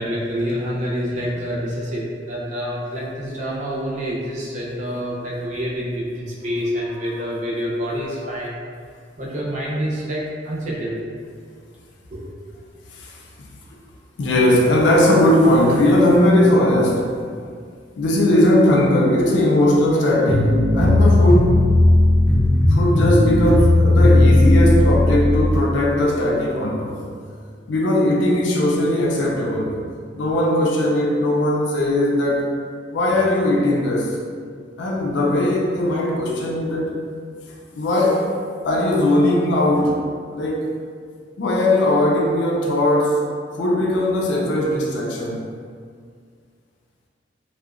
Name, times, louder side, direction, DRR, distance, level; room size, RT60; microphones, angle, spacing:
voice 1, 0.0-8.6 9.2-11.0 12.1-12.3, equal, 40° right, -5 dB, 0.5 m, -27 dB
voice 2, 12.9-13.2 14.2-17.1 18.0-21.6 22.7-27.0 27.7-29.8 30.1-32.5 32.9-34.2 34.8-37.0 37.7-38.3 38.6-40.0 40.3-40.7 41.4-43.2 43.5-45.4, left 1 dB, 75° left, -3 dB, 0.4 m, -18 dB
sound 1, 20.3-25.6, left 1 dB, 5° left, 0.5 m, -15 dB
2.7 x 2.0 x 2.3 m, 2.1 s
head